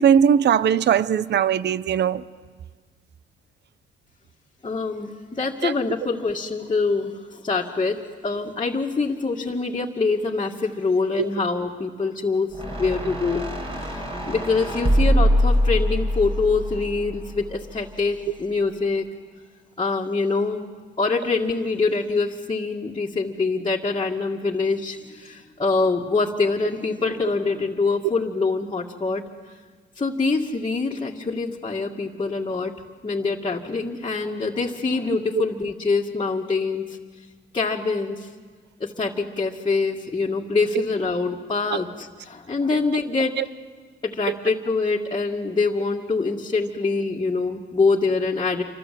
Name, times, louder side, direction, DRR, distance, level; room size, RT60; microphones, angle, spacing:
voice 1, 0.0-2.2 5.6-5.7 11.2-11.3 43.4-43.5 44.3-44.4, right 8 dB, 60° right, 0.8 m, -19 dB
voice 2, 4.6-12.5 12.8-13.4 13.9-14.0 14.3-19.1 19.8-20.7 21.0-29.2 30.0-32.7 33.0-36.8 37.5-38.3 38.8-43.4 44.0-48.6, left 4 dB, 25° left, 2.1 m, -24 dB
sound 1, 12.5-17.8, equal, 30° right, 5.5 m, -23 dB
27.5 x 24.5 x 7.8 m
cardioid pair, 90°, 20 cm